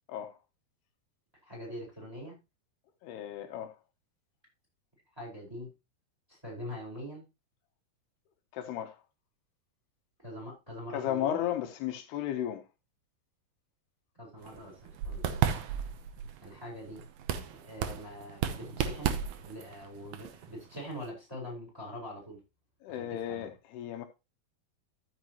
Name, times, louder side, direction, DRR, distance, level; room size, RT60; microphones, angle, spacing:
voice 1, 1.4-2.4 5.2-5.7 6.3-7.2 10.2-11.4 14.2-15.3 16.4-17.0 17.5-19.1 19.4-22.4 22.9-23.5, equal, 5° right, 4.3 m, -43 dB
voice 2, 3.0-3.8 8.5-9.0 10.9-12.6 22.8-24.1, left 11 dB, 80° left, 3.0 m, -34 dB
sound 1, 14.4-21.1, right 9 dB, 90° right, 1.6 m, -34 dB
13.5 x 6.6 x 3.0 m
omnidirectional pair, 4.6 m